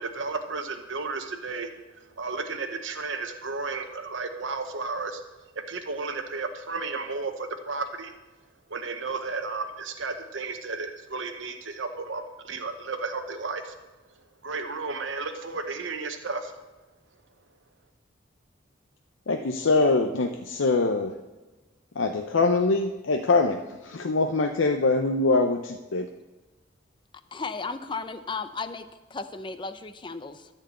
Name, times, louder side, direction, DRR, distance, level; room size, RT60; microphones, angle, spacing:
voice 1, 0.0-5.2 5.5-8.1 8.7-13.7 14.4-16.6, right 4 dB, 80° right, 6 dB, 0.9 m, -33 dB
voice 2, 19.3-21.1 22.0-26.1, left 3 dB, 85° left, 5 dB, 0.6 m, -23 dB
voice 3, 27.3-30.5, left 4 dB, 25° left, 10 dB, 0.5 m, -35 dB
13.5 x 4.6 x 7.7 m, 1.2 s
head